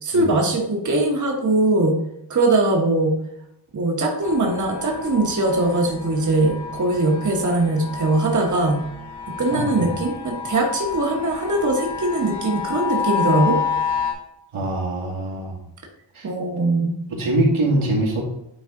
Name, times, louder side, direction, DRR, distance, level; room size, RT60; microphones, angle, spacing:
voice 1, 0.0-1.9 2.3-3.1 3.7-8.8 9.4-13.6 16.2-17.0, right 2 dB, 40° right, 0 dB, 1.1 m, -21 dB
sound 1, 4.2-14.1, left 6 dB, 60° left, 2.2 m, -29 dB
voice 2, 9.5-9.9 14.5-15.6 16.1-16.3 17.1-18.2, right 1 dB, 85° right, -2 dB, 2.1 m, -23 dB
9.6 x 3.4 x 3.7 m, 0.81 s
wide cardioid pair, 130°, 48 cm